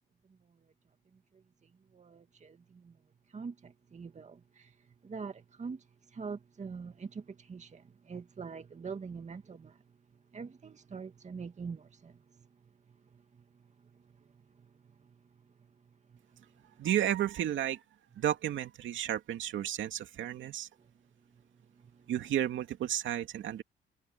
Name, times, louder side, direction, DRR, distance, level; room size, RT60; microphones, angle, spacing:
voice 1, 1.9-2.9 3.3-4.7 5.0-5.8 6.1-9.8 10.3-12.2 21.8-21.9, right 5 dB, 35° right, 2.1 m, -43 dB
voice 2, 16.8-17.8 18.2-20.7 22.1-23.6, right 11 dB, 75° right, 2.5 m, -32 dB
cardioid pair, 90°, 20 cm